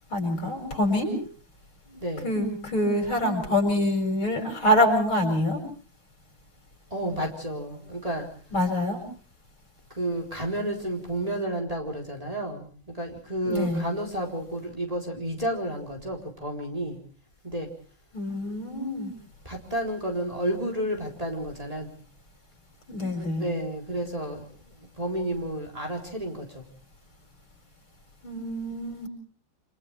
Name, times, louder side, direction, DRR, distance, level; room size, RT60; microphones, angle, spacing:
voice 1, 0.1-1.2 2.2-5.6 8.5-9.0 13.4-13.9 18.1-19.1 22.9-23.4 28.2-29.1, left 1 dB, 75° left, 3 dB, 7.9 m, -25 dB
voice 2, 1.9-2.3 6.9-8.3 9.9-17.0 17.4-17.7 19.4-21.9 23.4-26.7, right 1 dB, 15° right, 1 dB, 4.1 m, -31 dB
28.5 x 28.0 x 3.4 m, 0.42 s
omnidirectional pair, 2.3 m